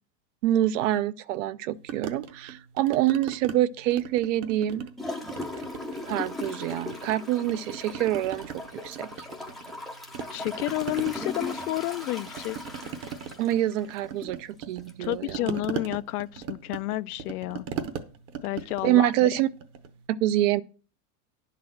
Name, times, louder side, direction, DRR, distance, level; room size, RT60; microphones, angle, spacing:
voice 1, 0.4-4.8 6.0-8.5 8.8-9.3 13.4-15.6 18.8-19.5 20.1-20.6, right 13 dB, 50° right, 0.6 m, -26 dB
sound 1, 1.9-3.6 3.9-5.0 5.3-7.1 7.4-9.8 10.1-20.0, right 7 dB, 30° right, 0.9 m, -38 dB
Gurgling / Toilet flush, 5.0-14.4 14.9-15.0, left 2 dB, ahead, 0.6 m, -38 dB
voice 2, 10.3-12.6 15.0-17.6 18.4-19.3, left 17 dB, 65° left, 0.5 m, -30 dB
10.5 x 4.1 x 7.5 m
supercardioid pair, 150°, 49 cm